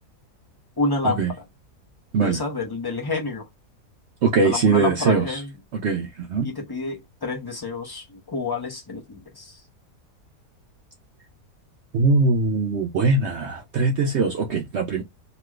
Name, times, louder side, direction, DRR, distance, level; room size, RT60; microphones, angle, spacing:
voice 1, 0.8-1.4 2.2-3.5 4.4-5.5 6.4-9.6, left 3 dB, 30° left, 0.4 m, -29 dB
voice 2, 4.2-5.4 5.7-6.5 11.9-15.0, right 4 dB, 70° right, 0.6 m, -21 dB
3.1 x 2.9 x 2.3 m
omnidirectional pair, 1.7 m